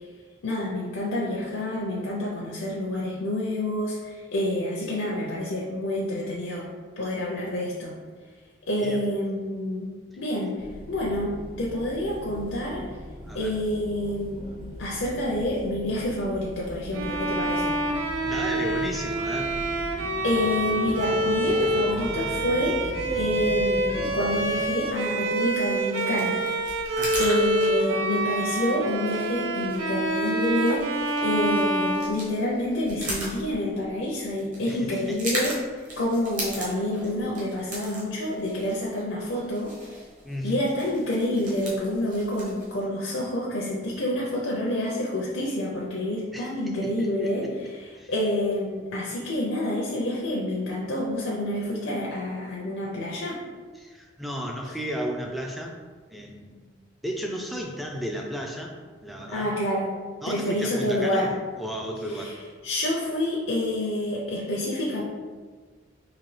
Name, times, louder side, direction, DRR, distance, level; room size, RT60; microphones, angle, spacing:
voice 1, 0.4-7.9 8.7-12.9 13.3-14.5 14.8-17.8 20.2-26.4 27.2-30.8 31.2-39.7 40.4-53.4 59.3-59.9 60.3-61.3 62.1-62.4 62.6-65.0, left 1 dB, 85° left, -4 dB, 0.6 m, -28 dB
sound 1, 10.6-24.6, equal, 60° right, 1.5 m, -39 dB
voice 2, 13.3-13.6 18.2-19.6 27.0-27.3 34.7-35.3 40.2-40.6 46.3-46.5 46.8-47.5 48.0-48.1 53.8-55.8 56.1-56.7 57.0-58.8 59.0-59.5 60.2-62.4, equal, ahead, 0 dB, 0.3 m, -34 dB
Bowed string instrument, 16.9-32.8, right 1 dB, 85° right, 0.4 m, -27 dB
sound 2, 23.7-42.8, right 1 dB, 40° right, 1.0 m, -39 dB
4.0 x 2.6 x 3.2 m, 1.5 s
head